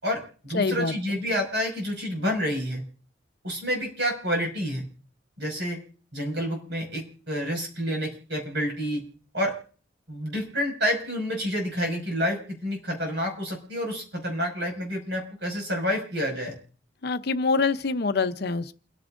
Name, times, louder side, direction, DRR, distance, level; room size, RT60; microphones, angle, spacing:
voice 1, 0.0-2.8 3.4-4.8 5.4-5.8 6.1-9.0 9.3-9.5 10.1-16.6, equal, 70° right, 5.5 m, -29 dB
voice 2, 0.5-1.2 17.0-18.7, left 4 dB, 60° left, 0.7 m, -25 dB
29.0 x 9.8 x 2.5 m
head